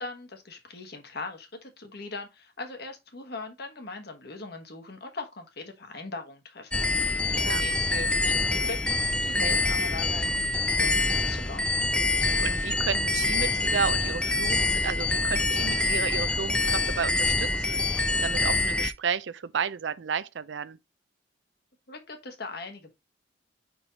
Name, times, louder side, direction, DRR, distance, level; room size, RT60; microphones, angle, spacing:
voice 1, 0.0-11.7 21.9-22.9, left 3 dB, 60° left, 1.3 m, -40 dB
sound 1, 6.7-18.9, left 2 dB, 5° left, 0.3 m, -26 dB
voice 2, 7.2-7.6 12.4-20.8, right 6 dB, 75° right, 0.5 m, -32 dB
5.2 x 4.5 x 4.0 m
head